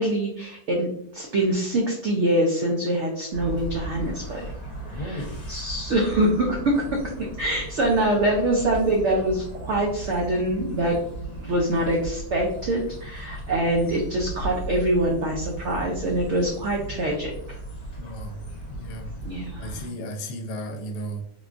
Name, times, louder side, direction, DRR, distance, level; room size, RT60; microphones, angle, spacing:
voice 1, 0.0-4.5 4.9-7.0 7.4-11.0 11.4-17.3 19.2-19.8, right 1 dB, 85° right, -1 dB, 0.6 m, -24 dB
sound 1, 3.3-19.9, right 1 dB, 50° left, 1.0 m, -36 dB
voice 2, 4.6-5.5 18.0-18.4 18.7-19.1 19.6-21.2, equal, 80° left, 5 dB, 1.1 m, -35 dB
3.6 x 2.3 x 2.4 m, 0.73 s
omnidirectional pair, 1.8 m